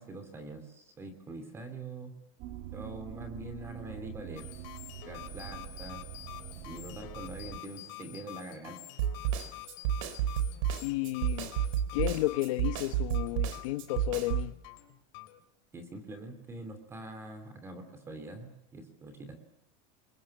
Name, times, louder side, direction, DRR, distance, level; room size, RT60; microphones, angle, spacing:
voice 1, 0.0-2.1 2.7-4.5 5.0-6.0 6.7-8.8 15.7-19.4, right 2 dB, 15° right, 9 dB, 2.9 m, -44 dB
sound 1, 2.4-7.6, right 12 dB, 50° right, 1.6 m, -45 dB
sound 2, 4.4-15.4, left 17 dB, 65° left, 3.7 m, -48 dB
Snare drum, 9.0-14.5, right 10 dB, 85° right, 3.9 m, -30 dB
voice 2, 10.8-11.5 11.9-14.5, left 18 dB, 90° left, 8 dB, 1.1 m, -32 dB
28.0 x 22.5 x 8.8 m, 0.76 s
cardioid pair, 175°, 17 cm